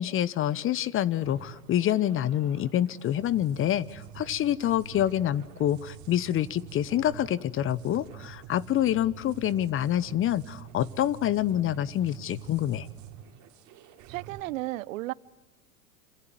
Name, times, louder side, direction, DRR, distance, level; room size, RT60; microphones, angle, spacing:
voice 1, 0.0-12.9, left 11 dB, 30° left, 1.0 m, -27 dB
sound 1, 1.1-14.4, right 10 dB, 40° right, 3.2 m, -47 dB
voice 2, 14.1-15.1, right 18 dB, 65° right, 0.9 m, -33 dB
27.5 x 26.5 x 7.8 m
hypercardioid pair, 95°, 43 cm